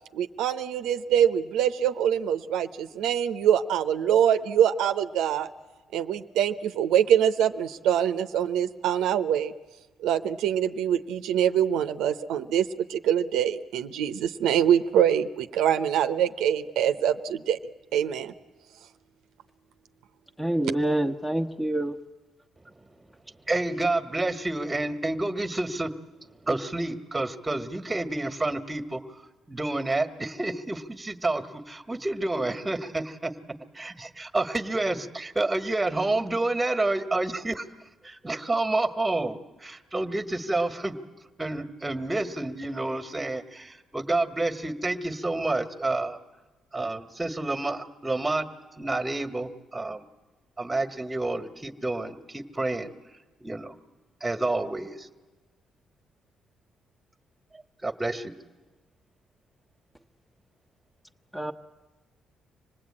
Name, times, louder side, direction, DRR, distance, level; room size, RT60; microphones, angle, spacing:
voice 1, 0.1-5.5 5.9-9.5 10.0-17.6 17.9-18.3, right 9 dB, 90° right, 9 dB, 0.7 m, -24 dB
voice 2, 20.4-21.9 61.3-61.5, right 1 dB, 5° left, 6 dB, 1.2 m, -26 dB
voice 3, 23.5-25.9 26.4-29.0 29.5-33.3 33.7-37.6 38.0-41.0 41.4-46.2 46.7-48.5 48.7-50.0 50.6-52.9 53.4-53.7 54.2-55.1 57.8-58.3, right 2 dB, 15° right, 9 dB, 1.5 m, -29 dB
26.0 x 19.0 x 8.7 m, 1.2 s
cardioid pair, 90°, 0 cm